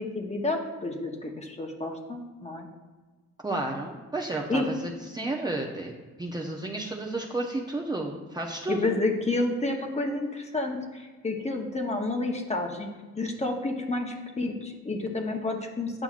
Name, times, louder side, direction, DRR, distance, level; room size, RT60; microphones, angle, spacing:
voice 1, 0.0-2.7 4.5-4.7 8.7-12.9 13.2-16.0, left 2 dB, 20° left, 2 dB, 0.9 m, -30 dB
voice 2, 3.4-5.9 6.2-8.9, right 2 dB, 15° right, -1 dB, 0.7 m, -32 dB
8.9 x 5.6 x 2.5 m, 1.3 s
cardioid pair, 90°, 30 cm